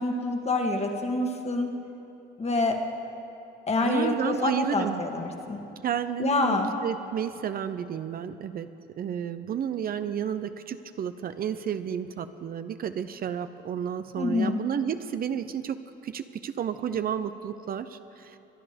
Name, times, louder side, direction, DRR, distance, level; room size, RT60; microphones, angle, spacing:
voice 1, 0.0-1.7 2.4-2.8 3.7-5.6 6.2-6.7 14.1-14.6, left 2 dB, 30° left, 3 dB, 1.8 m, -26 dB
voice 2, 3.8-5.0 5.8-8.7 9.0-15.8 16.0-18.4, right 8 dB, 45° right, 11 dB, 0.6 m, -31 dB
24.0 x 9.8 x 5.2 m, 2.8 s
supercardioid pair, 85°, 20 cm